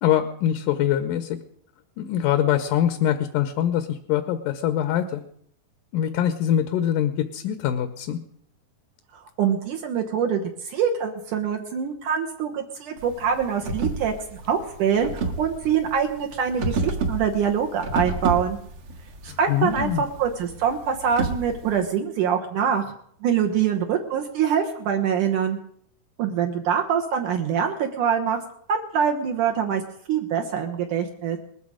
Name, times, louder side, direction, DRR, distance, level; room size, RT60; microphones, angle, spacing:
voice 1, 0.0-1.4 2.0-5.2 5.9-8.2 19.3-20.0, left 10 dB, 70° left, 10 dB, 2.2 m, -23 dB
voice 2, 9.4-18.6 19.2-22.9 23.2-25.6 26.2-28.4 28.7-29.8 30.1-31.4, right 7 dB, 65° right, 3 dB, 2.4 m, -24 dB
sound 1, 13.0-21.8, right 3 dB, 50° right, 1.9 m, -30 dB
20.0 x 14.0 x 5.0 m, 0.66 s
omnidirectional pair, 4.4 m